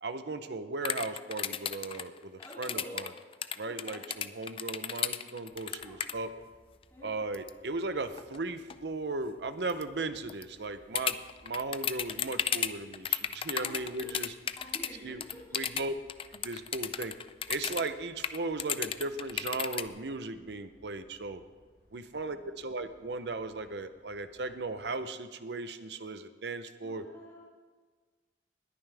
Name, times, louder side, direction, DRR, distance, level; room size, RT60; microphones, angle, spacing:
voice 1, 0.0-3.1 3.6-6.3 7.0-11.2 11.4-14.3 15.0-15.2 15.5-15.9 16.3-17.1 17.5-21.4 21.9-27.0, right 3 dB, 70° right, 11 dB, 0.7 m, -37 dB
sound 1, 0.8-6.1 7.3-7.5 8.2-8.4 8.7-8.8 9.7-9.8 10.3-10.4 11.0-14.9 15.2-17.9 18.2-19.9, left 9 dB, 30° left, 0.4 m, -33 dB
voice 2, 2.4-3.0 3.6-4.1 5.7-6.0 6.9-7.2 13.6-13.8 14.5-15.6 21.9-22.6 26.8-27.4, equal, 15° left, -7 dB, 2.9 m, -49 dB
sound 2, 5.4-24.9, equal, 90° left, 4.5 m, -65 dB
20.5 x 9.3 x 3.4 m, 1.4 s
head